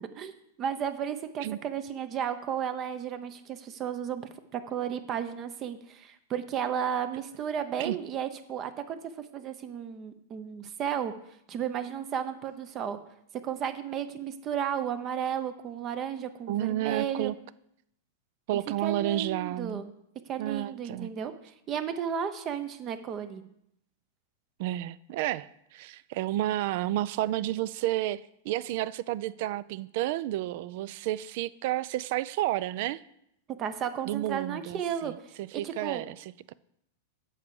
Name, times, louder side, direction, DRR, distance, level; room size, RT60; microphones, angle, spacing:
voice 1, 0.1-11.1 11.5-13.0 13.4-17.3 18.8-19.9 20.3-23.4 33.6-35.1 35.5-36.0, right 8 dB, 30° right, 0.7 m, -33 dB
voice 2, 16.5-17.3 18.5-19.8 20.4-21.1 24.6-33.0 34.0-36.5, right 14 dB, 55° right, 0.3 m, -31 dB
8.2 x 4.7 x 6.9 m
supercardioid pair, 140°, 0 cm